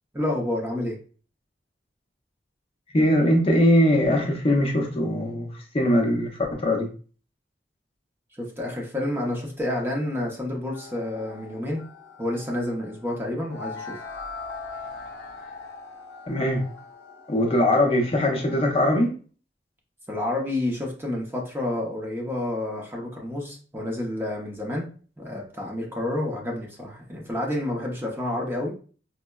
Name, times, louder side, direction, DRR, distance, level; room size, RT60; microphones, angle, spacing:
voice 1, 0.1-1.0 8.4-11.8 12.2-14.0 20.1-24.8 25.2-28.7, left 1 dB, 15° right, -1 dB, 0.6 m, -29 dB
voice 2, 2.9-6.9 16.3-16.6 17.3-19.1, left 1 dB, 35° left, 1 dB, 0.5 m, -21 dB
sound 1, 10.7-18.7, left 4 dB, 90° left, 0.7 m, -41 dB
4.3 x 2.0 x 2.2 m, 0.40 s
head